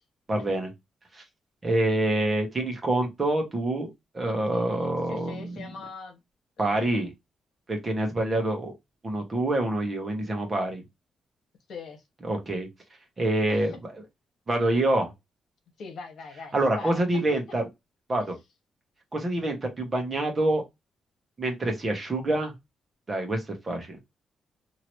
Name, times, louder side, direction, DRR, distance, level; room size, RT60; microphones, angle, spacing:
voice 1, 0.3-0.7 1.1-1.2 1.6-3.9 4.1-5.6 6.6-7.1 7.7-8.7 9.0-10.8 12.2-12.7 13.2-13.7 14.5-15.1 16.5-17.7 18.1-18.3 19.1-20.6 21.4-22.5 23.1-24.0, right 1 dB, 25° right, 1.1 m, -26 dB
voice 2, 4.3-6.2 6.6-7.0 11.7-12.0 13.5-13.7 15.8-17.6, left 4 dB, 70° left, 1.2 m, -42 dB
2.9 x 2.7 x 3.1 m
cardioid pair, 135°, 0 cm